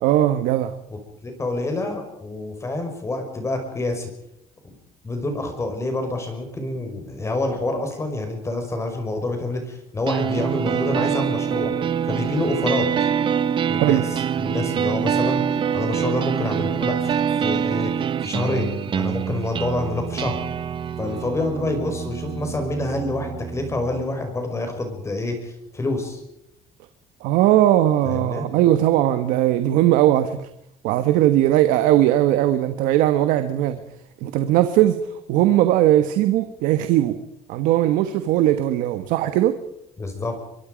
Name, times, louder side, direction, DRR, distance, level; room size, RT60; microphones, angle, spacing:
voice 1, 0.0-0.8 13.8-14.0 27.2-30.5 30.8-33.8 34.2-37.2 37.5-39.6, right 13 dB, 85° right, 10 dB, 1.3 m, -19 dB
voice 2, 0.9-4.1 5.0-11.7 12.0-13.1 13.7-20.4 21.0-26.2 28.0-28.4 40.0-40.4, left 2 dB, 20° left, 5 dB, 5.2 m, -27 dB
sound 1, 10.1-24.0, right 8 dB, 40° right, 0.9 m, -25 dB
23.5 x 23.5 x 5.2 m, 0.78 s
cardioid pair, 120°, 14 cm